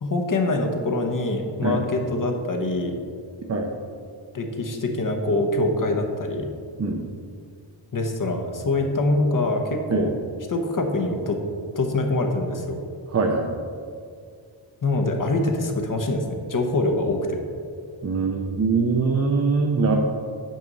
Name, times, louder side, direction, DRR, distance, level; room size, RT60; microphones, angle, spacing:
voice 1, 0.0-2.9 4.3-6.5 7.9-10.1 10.5-11.4 11.7-12.8 14.8-17.4, left 2 dB, 40° left, 4 dB, 1.0 m, -24 dB
voice 2, 13.1-13.5 18.0-20.0, right 4 dB, 30° right, 1 dB, 0.6 m, -22 dB
9.3 x 6.1 x 4.0 m, 2.2 s
wide cardioid pair, 120°, 49 cm